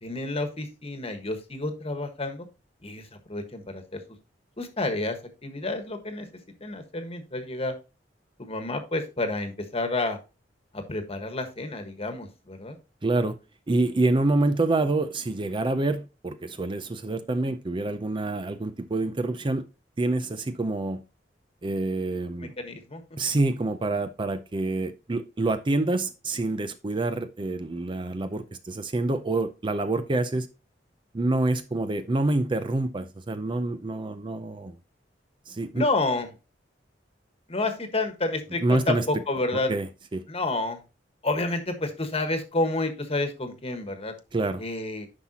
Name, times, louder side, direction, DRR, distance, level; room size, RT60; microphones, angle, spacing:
voice 1, 0.0-2.5 2.8-4.0 4.6-6.3 6.6-7.7 8.4-10.2 10.7-12.8 22.6-23.0 35.7-36.3 37.5-39.7 40.3-40.8 41.2-44.1 44.6-45.1, left 2 dB, 35° left, 1.3 m, -29 dB
voice 2, 13.0-13.4 13.7-19.6 20.0-21.0 21.6-22.5 23.2-30.5 31.1-34.7 35.5-35.8 38.6-39.0 39.7-40.2 44.3-44.6, right 2 dB, 25° right, 0.5 m, -27 dB
9.8 x 5.7 x 2.8 m
head